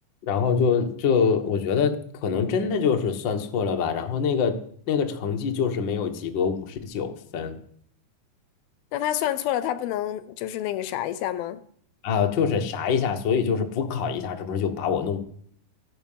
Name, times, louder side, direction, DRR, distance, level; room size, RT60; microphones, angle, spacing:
voice 1, 0.2-4.6 4.9-7.6 12.0-15.2, left 6 dB, 60° left, 4 dB, 1.2 m, -25 dB
voice 2, 8.9-11.6, left 12 dB, 80° left, 13 dB, 2.4 m, -28 dB
15.0 x 12.0 x 5.7 m, 0.63 s
omnidirectional pair, 4.5 m